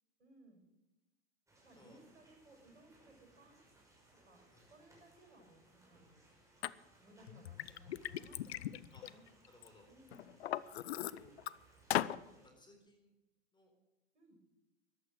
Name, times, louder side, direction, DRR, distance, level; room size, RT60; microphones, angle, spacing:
voice 1, 0.2-0.6 1.6-3.7 4.1-6.2 7.0-9.3 9.9-10.3 14.1-14.4, right 1 dB, 75° right, 3 dB, 6.0 m, -62 dB
sound 1, 1.5-12.5, right 2 dB, 10° right, 5.9 m, -67 dB
Liquid, 6.6-6.7 7.3-9.7 10.1-11.5 11.9-12.2, left 13 dB, 65° left, 0.7 m, -38 dB
voice 2, 9.5-9.9 11.1-11.3 12.3-13.1 13.5-13.7, left 2 dB, 15° left, 3 dB, 4.2 m, -63 dB
14.5 x 11.5 x 6.5 m, 1.0 s
figure-of-eight pair, 100°, 34 cm